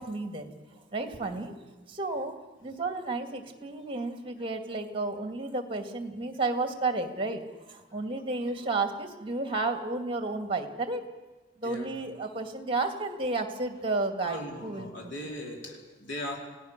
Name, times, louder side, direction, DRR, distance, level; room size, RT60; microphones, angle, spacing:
voice 1, 0.0-1.6 1.9-2.3 2.6-11.1 11.6-15.2, right 3 dB, 30° right, 6 dB, 2.3 m, -32 dB
voice 2, 11.6-12.0 14.2-16.4, left 1 dB, 75° left, 1 dB, 4.7 m, -39 dB
28.0 x 18.0 x 6.8 m, 1.2 s
head